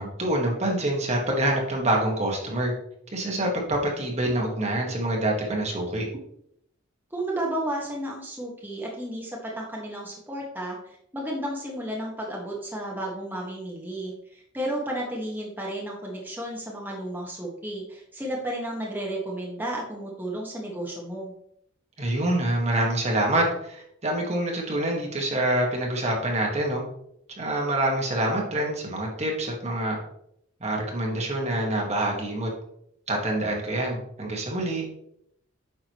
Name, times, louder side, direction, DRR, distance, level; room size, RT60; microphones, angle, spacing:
voice 1, 0.0-2.7 3.1-6.1 22.0-26.8 27.4-30.0 30.6-32.5 33.1-34.8, right 1 dB, 35° right, 0 dB, 1.6 m, -26 dB
voice 2, 7.1-21.3, right 1 dB, 10° right, -3 dB, 1.5 m, -33 dB
9.3 x 6.4 x 3.1 m, 0.73 s
head